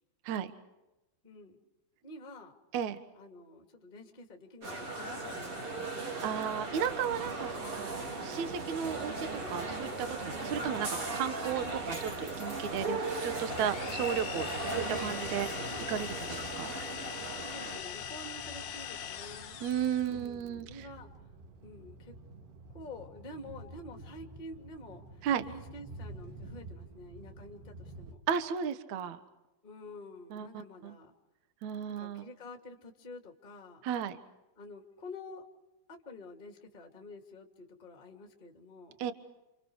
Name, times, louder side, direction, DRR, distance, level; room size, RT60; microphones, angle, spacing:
voice 1, 1.2-1.6 2.0-2.5 3.1-5.9 14.2-14.5 17.3-19.6 20.1-21.1 21.6-22.1 22.7-28.2 29.6-31.1 31.9-33.8 34.6-35.4 35.9-39.0, left 2 dB, 20° left, 2 dB, 1.4 m, -49 dB
sound 1, 4.6-17.8, right 2 dB, 30° right, 4.0 m, -37 dB
voice 2, 6.2-15.5 15.9-16.7 19.6-20.9 25.2-25.4 28.3-29.2 30.3-30.5 30.8-31.0 31.6-32.3 33.8-34.2 39.0-39.1, right 8 dB, 80° right, 10 dB, 1.6 m, -34 dB
sound 2, 8.4-28.1, right 2 dB, 60° right, 3.9 m, -51 dB
sound 3, 13.5-20.2, left 8 dB, 70° left, 1.7 m, -41 dB
29.5 x 28.5 x 4.9 m, 1.0 s
omnidirectional pair, 5.8 m